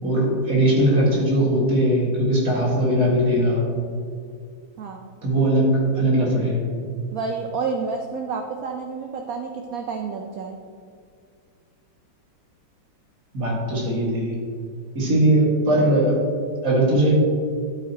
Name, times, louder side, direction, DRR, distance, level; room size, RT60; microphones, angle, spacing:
voice 1, 0.0-3.6 5.2-6.6 13.3-14.4 14.9-16.2 16.6-17.1, right 1 dB, 45° right, -5 dB, 2.3 m, -20 dB
voice 2, 4.8-5.1 7.1-10.6, right 5 dB, 70° right, 3 dB, 0.8 m, -29 dB
12.0 x 8.4 x 2.9 m, 2.2 s
omnidirectional pair, 2.2 m